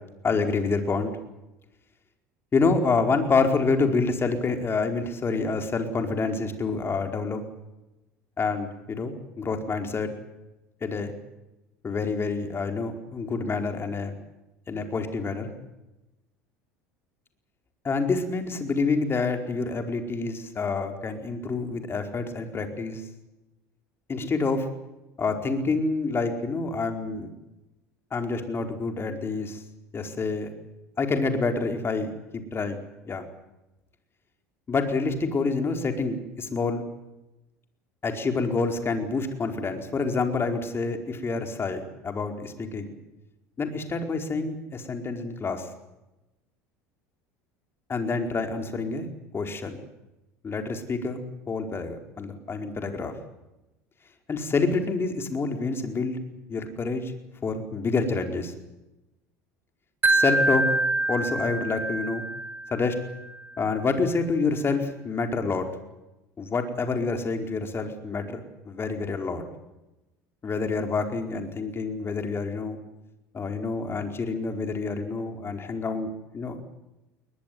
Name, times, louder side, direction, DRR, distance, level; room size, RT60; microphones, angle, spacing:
voice 1, 0.2-1.1 2.5-7.4 8.4-10.1 10.8-11.1 11.8-14.2 14.7-15.5 17.8-23.0 24.1-24.7 25.2-27.3 28.1-29.6 29.9-30.5 31.0-32.8 33.0-33.3 34.7-36.8 38.0-42.9 43.6-45.7 47.9-49.1 49.3-49.8 50.4-51.2 51.5-53.1 54.3-56.2 56.5-57.1 57.4-58.5 60.1-60.7 61.1-62.2 62.7-63.0 63.6-65.7 66.4-69.4 70.4-72.8 73.3-76.6, left 4 dB, 30° left, 5 dB, 4.7 m, -27 dB
Wind chime, 60.0-63.1, right 2 dB, 25° right, 5.1 m, -25 dB
21.5 x 20.5 x 9.6 m, 0.98 s
hypercardioid pair, 80°, 8 cm